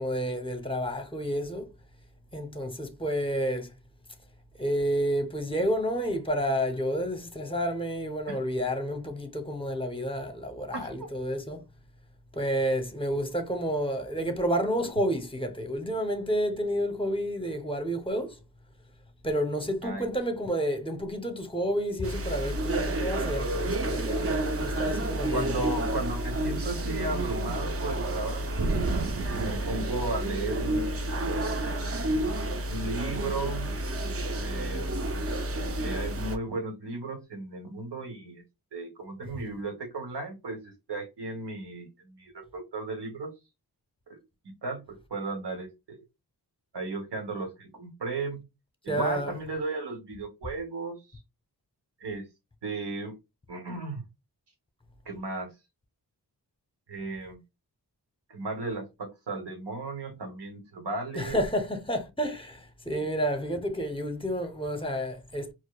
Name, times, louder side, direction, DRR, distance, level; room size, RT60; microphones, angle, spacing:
voice 1, 0.0-1.7 2.3-3.7 4.6-11.6 12.3-18.4 19.2-25.8 48.9-49.4 61.1-65.5, equal, 15° left, 0.8 m, -30 dB
voice 2, 10.7-11.1 19.8-20.1 25.3-31.0 32.7-33.8 34.3-35.0 35.8-38.4 38.7-43.3 44.1-44.2 44.6-46.0 46.7-48.4 48.8-51.0 52.0-52.3 52.6-53.2 53.5-54.0 55.0-55.5 56.9-57.4 58.3-61.4, right 3 dB, 75° right, 1.1 m, -35 dB
sound 1, 22.0-36.4, right 1 dB, 35° right, 0.6 m, -30 dB
4.7 x 2.1 x 2.3 m
cardioid pair, 45°, 40 cm